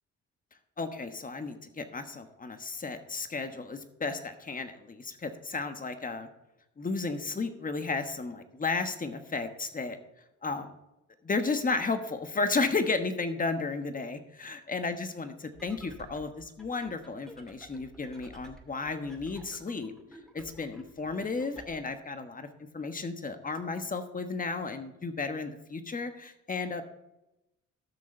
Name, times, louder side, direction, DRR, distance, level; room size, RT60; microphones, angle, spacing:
voice 1, 0.8-6.3 6.8-10.0 10.4-10.8 11.2-19.9 20.3-22.5 22.7-26.8, left 3 dB, 25° left, 8 dB, 1.3 m, -33 dB
sound 1, 15.5-21.7, right 1 dB, ahead, 2.1 m, -53 dB
14.0 x 6.3 x 4.4 m, 0.92 s
cardioid pair, 90°, 30 cm